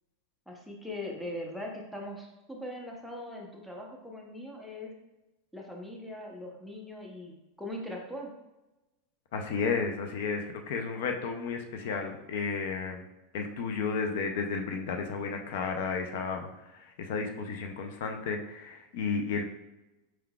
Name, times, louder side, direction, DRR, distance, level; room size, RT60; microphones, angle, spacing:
voice 1, 0.5-4.9 5.5-8.3, left 1 dB, ahead, -1 dB, 0.7 m, -41 dB
voice 2, 9.3-13.0 13.3-19.4, left 5 dB, 70° left, 4 dB, 0.5 m, -33 dB
4.5 x 3.7 x 2.3 m, 1.0 s
supercardioid pair, 135°, 0 cm